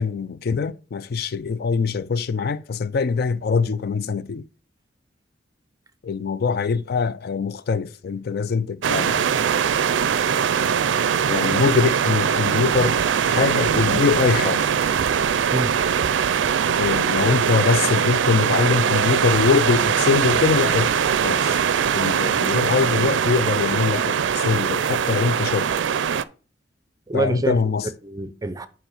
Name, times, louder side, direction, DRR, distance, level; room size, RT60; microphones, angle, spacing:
voice 1, 0.0-4.5 6.0-9.4 11.3-13.0 13.3-14.7 16.8-20.9 21.2-21.6 21.9-25.7 27.1-27.9, left 5 dB, 55° left, 0.4 m, -23 dB
sound 1, 8.8-26.2, right 7 dB, 85° right, 0.4 m, -21 dB
voice 2, 15.5-15.8 27.1-28.7, right 2 dB, 20° right, 0.6 m, -27 dB
5.8 x 4.7 x 5.7 m
head